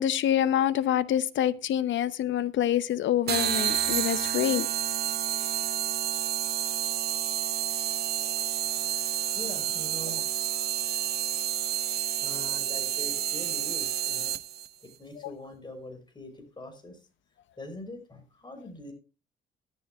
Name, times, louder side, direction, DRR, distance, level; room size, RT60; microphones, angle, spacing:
voice 1, 0.0-4.7, left 11 dB, 70° left, 15 dB, 0.9 m, -26 dB
sound 1, 3.3-14.7, right 10 dB, 55° right, 0.7 m, -29 dB
voice 2, 9.4-10.2 11.8-14.4 15.0-17.0 17.6-18.9, left 1 dB, 20° left, 5 dB, 5.7 m, -44 dB
14.0 x 12.0 x 2.4 m, 0.31 s
cardioid pair, 90°, 20 cm